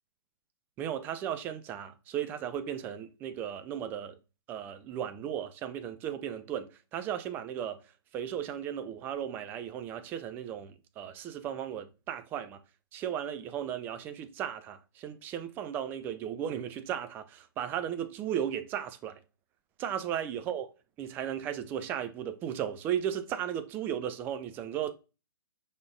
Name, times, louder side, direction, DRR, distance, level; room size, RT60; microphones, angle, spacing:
voice 1, 0.8-4.2 4.5-7.8 8.1-12.6 12.9-19.2 19.8-20.7 21.0-24.9, right 9 dB, 15° right, 0.4 m, -35 dB
5.2 x 3.5 x 2.4 m
figure-of-eight pair, 125°, 12 cm